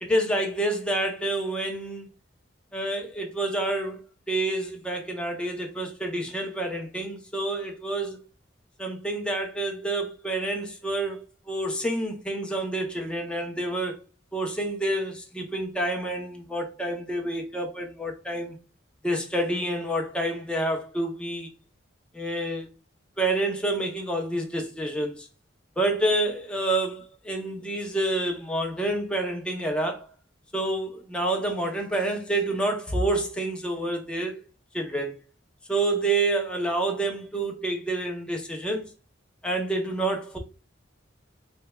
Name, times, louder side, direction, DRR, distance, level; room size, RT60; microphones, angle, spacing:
voice 1, 0.0-2.1 2.7-4.0 4.3-8.2 8.8-13.9 14.3-18.5 19.0-21.5 22.1-22.7 23.2-25.3 25.8-30.1 30.5-34.4 34.7-35.1 35.7-38.9 39.4-40.4, right 1 dB, 5° left, 0.6 m, -28 dB
3.3 x 3.2 x 2.2 m
head